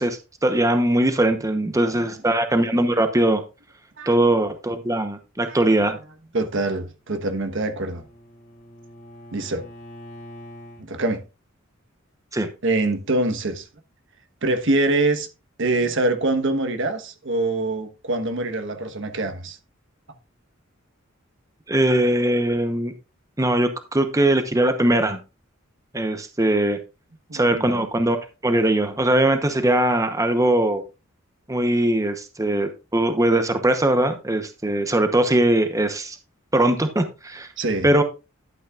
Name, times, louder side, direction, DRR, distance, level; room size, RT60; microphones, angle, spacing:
voice 1, 0.0-3.4 4.1-6.0 12.3-12.5 21.7-22.9 23.4-25.2 25.9-26.8 27.3-28.2 28.4-30.8 31.5-36.2 36.5-37.5 37.8-38.0, right 1 dB, 15° right, 0.9 m, -20 dB
voice 2, 6.3-8.0 9.3-9.7 10.8-11.2 12.6-13.7 14.4-15.3 15.6-19.6 27.3-27.9 37.6-37.9, right 2 dB, 65° right, 1.3 m, -24 dB
Bowed string instrument, 7.0-10.8, equal, 55° left, 3.5 m, -44 dB
12.0 x 8.6 x 2.4 m
head